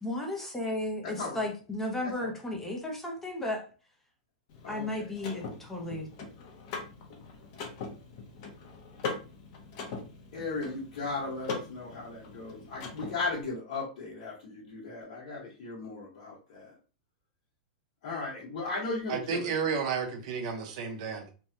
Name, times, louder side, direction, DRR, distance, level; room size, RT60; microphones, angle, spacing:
voice 1, 0.0-3.6 4.7-6.1, left 1 dB, 10° left, 0 dB, 0.6 m, -34 dB
voice 2, 1.0-1.5 2.0-2.3 4.6-5.1 10.3-16.7 18.0-19.5, left 3 dB, 60° left, -6 dB, 1.2 m, -36 dB
Car / Mechanisms, 4.5-13.4, left 4 dB, 45° left, 0.8 m, -41 dB
voice 3, 19.1-21.3, right 6 dB, 50° right, 4 dB, 0.7 m, -32 dB
3.2 x 2.2 x 2.7 m, 0.36 s
supercardioid pair, 155°, 4 cm